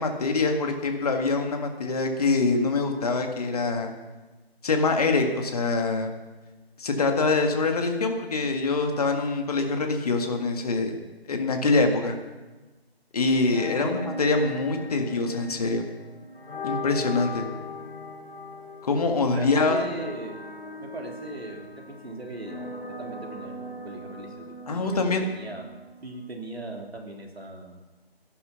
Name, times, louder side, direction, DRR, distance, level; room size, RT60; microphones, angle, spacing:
voice 1, 0.0-3.9 4.6-6.1 6.8-11.0 11.3-12.2 13.1-15.8 16.6-17.4 18.8-19.9 24.7-25.2, left 3 dB, 35° left, 4 dB, 1.8 m, -24 dB
sound 1, 13.4-26.3, left 2 dB, 60° left, 4.9 m, -39 dB
voice 2, 19.3-20.4 20.8-22.6 23.0-24.9 25.2-25.7 26.0-27.8, right 2 dB, 75° right, 1 dB, 3.5 m, -39 dB
14.0 x 11.0 x 5.8 m, 1.2 s
figure-of-eight pair, 155°, 32 cm